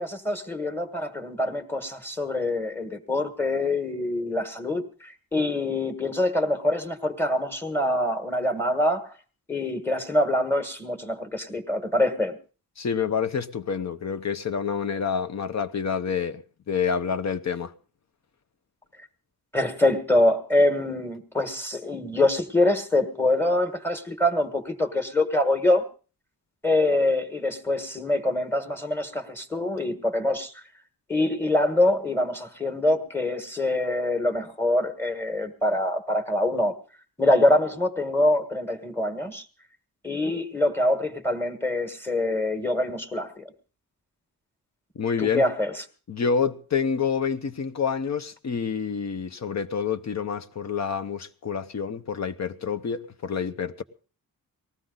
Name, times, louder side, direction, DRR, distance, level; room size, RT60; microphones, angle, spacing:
voice 1, 0.0-9.1 9.5-12.4 19.5-25.9 26.6-30.6 31.1-36.8 37.2-39.4 40.0-43.4 45.2-45.7, left 1 dB, 5° left, 1.6 m, -25 dB
voice 2, 12.8-17.7 44.9-45.5 46.1-53.8, left 6 dB, 50° left, 0.9 m, -28 dB
19.5 x 15.0 x 4.0 m
wide cardioid pair, 155°, 35 cm